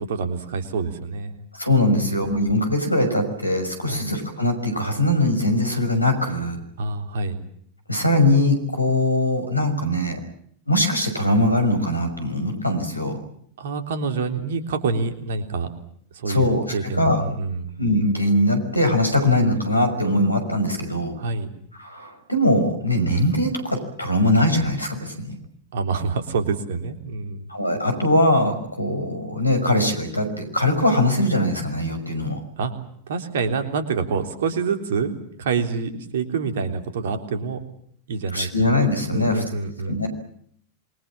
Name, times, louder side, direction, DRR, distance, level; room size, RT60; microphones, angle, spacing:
voice 1, 0.0-1.3 1.9-2.2 3.9-4.1 6.8-7.4 13.6-15.7 16.1-16.5 16.7-17.8 21.2-21.5 25.7-27.5 32.6-32.7 33.1-37.6 38.1-38.5 38.8-40.0, right 4 dB, 60° right, 7 dB, 3.7 m, -27 dB
voice 2, 1.5-6.6 7.9-10.2 10.7-13.2 16.3-17.2 17.8-21.2 21.8-25.4 27.5-32.4 38.3-39.4 39.9-40.1, left 1 dB, 85° left, 7 dB, 5.9 m, -21 dB
27.5 x 23.0 x 7.4 m, 0.66 s
figure-of-eight pair, 90°, 0 cm